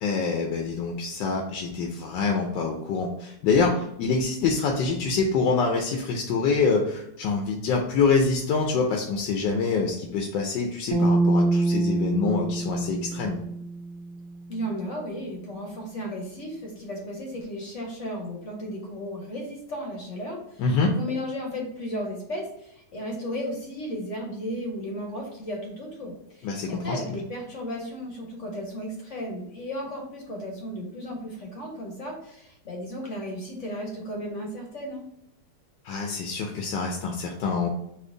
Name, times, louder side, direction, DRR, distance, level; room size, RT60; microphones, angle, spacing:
voice 1, 0.0-13.4 20.6-20.9 26.4-27.0 35.8-37.7, left 4 dB, 80° left, 2 dB, 1.3 m, -25 dB
sound 1, 10.9-14.3, right 2 dB, 85° right, 1.5 m, -25 dB
voice 2, 14.5-35.0, equal, 50° left, 0 dB, 1.0 m, -34 dB
4.3 x 2.9 x 3.8 m, 0.78 s
omnidirectional pair, 1.9 m